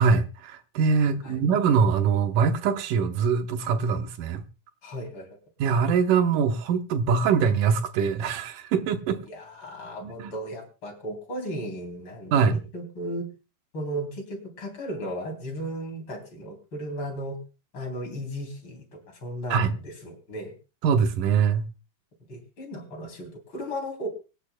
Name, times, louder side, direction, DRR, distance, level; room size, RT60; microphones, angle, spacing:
voice 1, 0.0-4.4 5.6-9.2 10.0-10.3 12.3-12.6 19.5-19.7 20.8-21.7, right 6 dB, 85° right, 2.6 m, -23 dB
voice 2, 4.8-5.3 9.3-12.4 12.7-13.3 13.7-17.4 17.7-20.5 22.3-24.1, equal, 40° left, 3.8 m, -35 dB
23.5 x 9.9 x 2.2 m
omnidirectional pair, 3.6 m